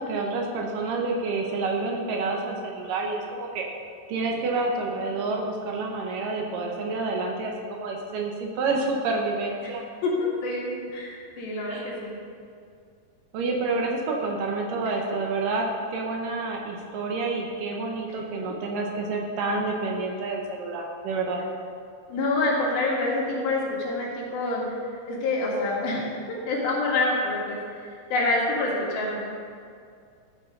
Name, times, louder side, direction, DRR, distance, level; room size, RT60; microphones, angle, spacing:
voice 1, 0.0-3.7 4.1-9.8 11.7-12.0 13.3-21.4, right 3 dB, 70° right, 0 dB, 2.3 m, -28 dB
voice 2, 10.0-12.2 22.1-24.8 25.1-26.1 26.5-29.3, left 2 dB, 75° left, -4 dB, 3.6 m, -27 dB
13.5 x 6.1 x 5.3 m, 2.3 s
omnidirectional pair, 4.3 m